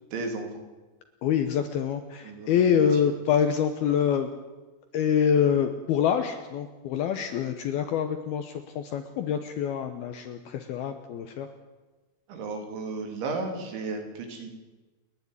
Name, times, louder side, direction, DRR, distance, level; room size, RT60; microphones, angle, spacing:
voice 1, 0.1-0.6 2.2-2.9 12.3-14.5, right 3 dB, 70° right, 4 dB, 5.2 m, -34 dB
voice 2, 1.2-4.3 4.9-11.5, left 8 dB, 75° left, 7 dB, 2.4 m, -26 dB
29.0 x 11.0 x 9.9 m, 1.2 s
omnidirectional pair, 5.6 m